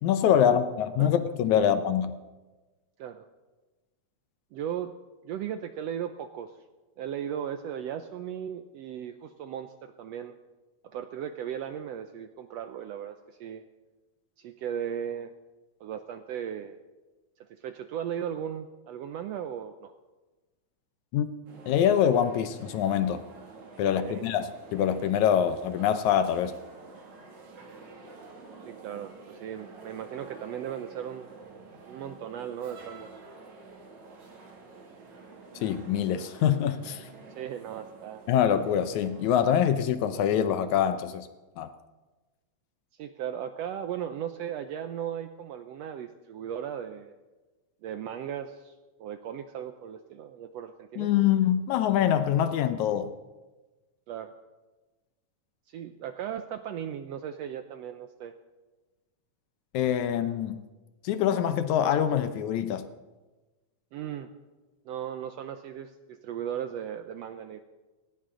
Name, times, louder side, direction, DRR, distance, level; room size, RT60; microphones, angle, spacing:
voice 1, 0.0-2.1 21.1-21.3 21.7-23.2 23.8-26.5 35.6-37.1 38.3-41.3 41.6-41.7 51.0-53.1 59.7-60.6 61.0-62.9, left 9 dB, 75° left, 11 dB, 1.9 m, -25 dB
voice 2, 4.5-4.9 5.2-6.6 7.0-10.3 10.8-13.6 14.4-15.3 15.8-16.8 17.5-19.9 24.0-24.2 28.7-31.3 31.9-33.1 37.4-38.3 43.0-47.1 47.8-48.7 49.0-51.1 54.1-54.3 55.7-58.4 63.9-64.3 64.9-67.6, right 9 dB, 85° right, 8 dB, 1.4 m, -37 dB
sound 1, 21.5-39.4, right 4 dB, 65° right, 3.7 m, -49 dB
18.5 x 18.5 x 3.8 m, 1.2 s
omnidirectional pair, 3.7 m